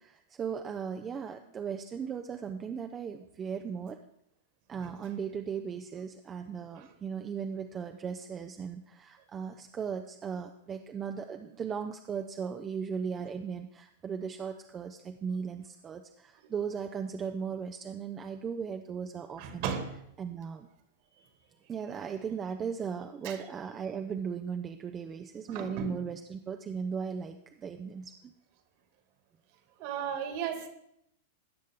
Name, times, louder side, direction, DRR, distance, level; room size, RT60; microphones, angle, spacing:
voice 1, 0.0-4.0 4.7-19.7 20.2-20.7 21.7-28.3, right 6 dB, 25° right, 6 dB, 0.6 m, -37 dB
voice 2, 19.4-19.9 23.2-23.4 25.5-26.0 29.8-30.7, right 7 dB, 50° right, 6 dB, 1.9 m, -35 dB
16.5 x 6.4 x 3.7 m, 0.76 s
hypercardioid pair, 105°, 0 cm